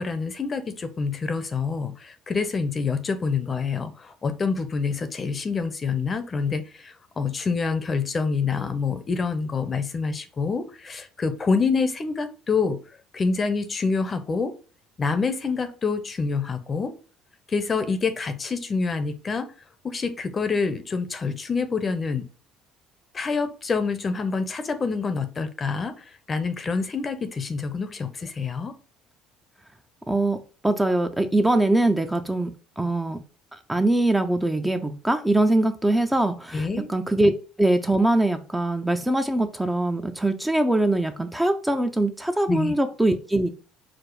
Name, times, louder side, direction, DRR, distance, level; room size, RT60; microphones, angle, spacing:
voice 1, 0.0-12.8 13.1-14.5 15.0-16.9 17.5-19.5 19.8-22.2 23.1-28.7 36.5-36.9 42.5-42.7, left 4 dB, 35° left, 9 dB, 0.7 m, -27 dB
voice 2, 30.1-30.4 30.6-33.2 33.5-43.5, right 1 dB, 10° right, 7 dB, 0.5 m, -22 dB
4.9 x 2.0 x 4.5 m, 0.37 s
supercardioid pair, 85°, 0 cm